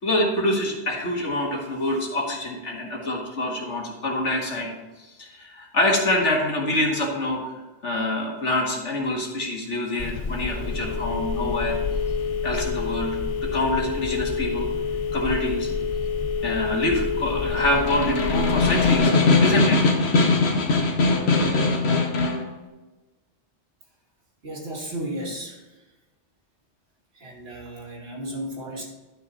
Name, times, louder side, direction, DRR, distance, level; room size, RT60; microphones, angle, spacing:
voice 1, 0.0-4.7 5.0-7.5 7.8-11.8 12.4-14.7 15.1-15.7 16.4-19.1 19.4-19.8, left 1 dB, 80° left, 0 dB, 2.2 m, -26 dB
Telephone, 10.0-19.0, left 5 dB, 45° left, 0.5 m, -28 dB
Snare drum, 17.5-22.5, left 3 dB, 60° left, 1.3 m, -20 dB
voice 2, 24.4-25.6 27.2-28.8, right 1 dB, 55° right, -3 dB, 2.5 m, -34 dB
12.0 x 6.0 x 4.1 m, 1.2 s
omnidirectional pair, 1.2 m